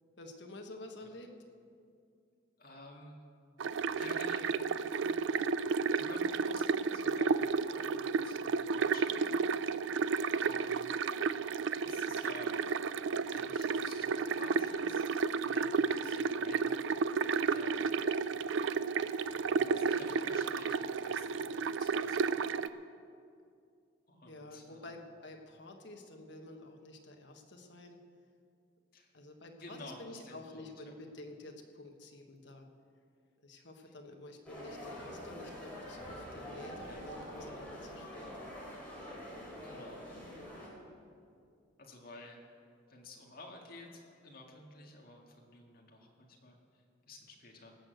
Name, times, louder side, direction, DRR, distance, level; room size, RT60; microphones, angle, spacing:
voice 1, 0.2-1.3 24.3-28.0 29.1-32.7 33.4-38.3, left 2 dB, 60° left, 3 dB, 1.4 m, -50 dB
voice 2, 2.6-3.2 3.9-5.0 5.9-9.4 10.4-10.9 11.8-12.6 13.3-15.1 15.4-16.8 17.5-18.0 19.4-22.8 24.1-24.9 28.9-29.1 29.4-31.0 33.9-34.0 36.9-37.1 39.0-39.2 39.5-40.4 41.8-42.4 42.9-47.8, left 2 dB, 45° left, 0 dB, 2.0 m, -52 dB
sound 1, 3.6-22.7, right 5 dB, 70° right, 0.4 m, -32 dB
sound 2, 34.5-40.7, equal, 10° left, 3.4 m, -46 dB
18.5 x 6.6 x 7.8 m, 2.3 s
head